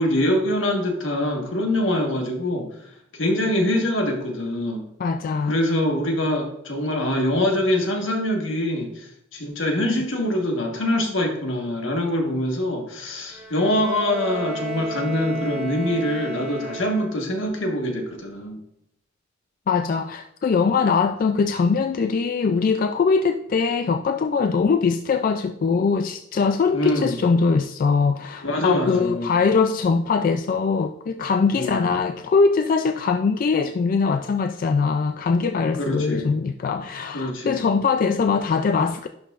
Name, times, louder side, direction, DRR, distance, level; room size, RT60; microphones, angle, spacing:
voice 1, 0.0-2.7 3.1-4.9 5.5-18.6 26.7-27.2 28.4-29.3 31.5-31.9 35.8-36.3 37.1-37.6, left 1 dB, 75° left, 2 dB, 1.5 m, -24 dB
voice 2, 5.0-5.5 19.7-39.1, left 5 dB, 45° left, 7 dB, 0.3 m, -22 dB
Bowed string instrument, 13.3-17.4, right 2 dB, 10° right, 3.1 m, -33 dB
11.0 x 5.7 x 2.5 m, 0.77 s
head